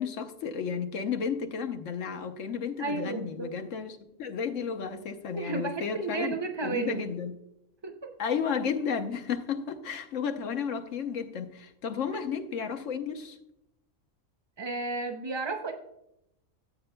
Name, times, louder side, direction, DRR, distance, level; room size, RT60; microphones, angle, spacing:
voice 1, 0.0-6.4 6.6-7.3 8.2-13.4, left 6 dB, 70° left, 6 dB, 1.2 m, -33 dB
voice 2, 2.8-3.5 5.3-7.0 7.8-8.1 14.6-15.7, right 3 dB, 35° right, 4 dB, 0.4 m, -32 dB
14.0 x 8.0 x 2.2 m, 0.81 s
omnidirectional pair, 1.4 m